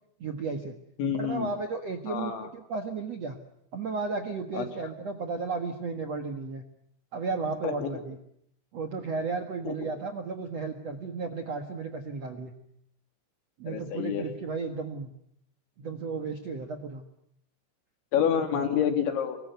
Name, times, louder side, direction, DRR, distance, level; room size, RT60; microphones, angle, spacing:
voice 1, 0.2-0.8 1.1-3.4 3.7-6.6 7.1-8.2 8.7-12.5 13.6-15.1 15.8-17.0, right 4 dB, 65° right, 5 dB, 1.6 m, -34 dB
voice 2, 1.0-1.5 2.1-2.5 4.5-4.7 7.6-7.9 9.7-9.8 13.7-14.2 18.1-19.4, left 8 dB, 75° left, 7 dB, 4.9 m, -28 dB
26.0 x 22.5 x 9.3 m, 0.73 s
omnidirectional pair, 5.5 m